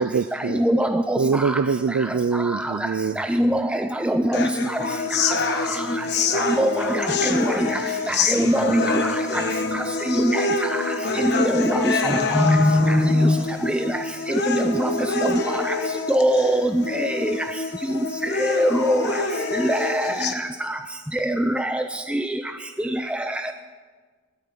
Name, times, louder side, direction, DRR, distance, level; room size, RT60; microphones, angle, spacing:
voice 1, 0.0-0.6 1.2-3.2, right 5 dB, 75° right, 0.4 m, -23 dB
voice 2, 0.6-1.2 3.2-4.5 6.6-6.7 7.2-7.5 8.1-9.1 10.2-10.5 11.4-12.1 13.7-13.8 14.6-14.9 15.2-15.3 16.1-17.4 18.4-19.0 19.7-20.1 21.2-21.8 22.1-22.2, right 1 dB, 5° right, 0.4 m, -22 dB
sound 1, 4.3-20.3, left 4 dB, 55° left, 1.1 m, -26 dB
voice 3, 6.0-6.6 7.1-7.2 12.0-13.5, left 1 dB, 55° right, 5.9 m, -21 dB
17.0 x 13.0 x 5.9 m
head